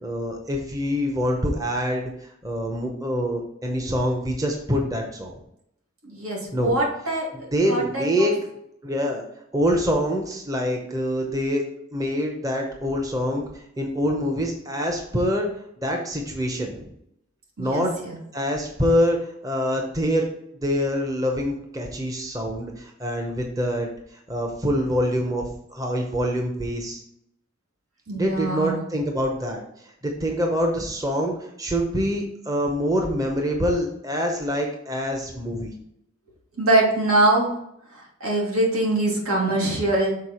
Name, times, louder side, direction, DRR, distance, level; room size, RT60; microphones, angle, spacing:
voice 1, 0.0-2.1 2.4-5.3 6.5-6.7 7.3-8.3 8.8-9.2 9.5-11.6 11.9-15.5 15.8-16.9 17.6-17.9 18.3-20.2 20.6-27.0 28.1-35.7, equal, 15° right, 1 dB, 0.7 m, -25 dB
voice 2, 6.0-7.3 7.7-8.3 17.6-18.1 28.1-28.8 36.6-37.5 38.2-40.1, right 2 dB, 85° right, -3 dB, 2.3 m, -23 dB
6.6 x 4.3 x 4.3 m, 0.76 s
head